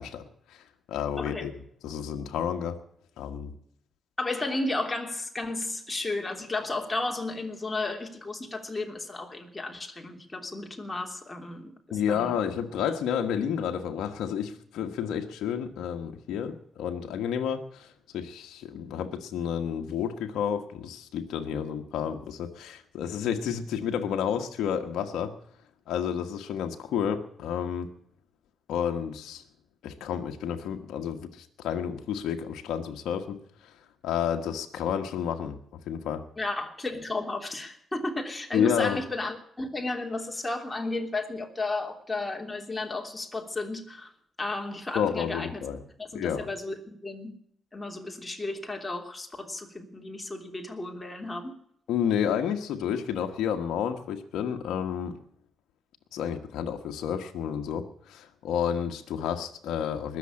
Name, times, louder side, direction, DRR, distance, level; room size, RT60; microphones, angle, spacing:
voice 1, 0.0-2.8 3.2-3.5 11.9-25.3 25.9-27.9 28.7-29.4 29.8-33.7 34.0-35.6 35.9-36.2 38.5-39.0 44.9-45.8 46.1-46.5 51.9-55.2 56.1-60.2, left 8 dB, 80° left, 4 dB, 1.3 m, -30 dB
voice 2, 1.2-1.5 4.2-12.3 36.4-44.1 44.4-45.6 46.0-47.3 47.7-51.6, left 2 dB, 20° left, 2 dB, 3.2 m, -33 dB
20.5 x 7.1 x 9.7 m, 0.68 s
supercardioid pair, 55°, 0 cm